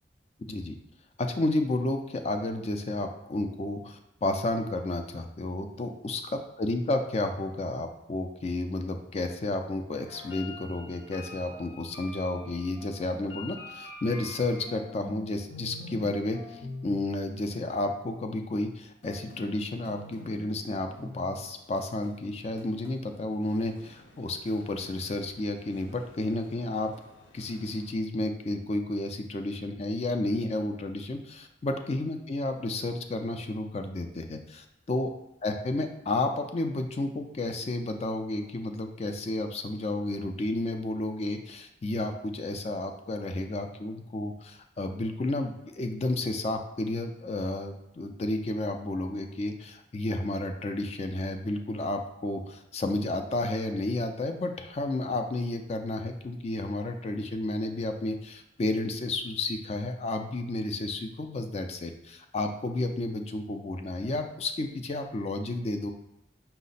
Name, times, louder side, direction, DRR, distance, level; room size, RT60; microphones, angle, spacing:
voice 1, 1.2-26.9 27.3-35.1 35.4-65.9, left 2 dB, 35° left, 6 dB, 0.4 m, -31 dB
sound 1, 10.0-15.2 15.5-16.1 16.3-17.0 19.0-27.9, left 2 dB, 80° left, 0.8 m, -46 dB
5.6 x 2.1 x 4.0 m, 0.87 s
head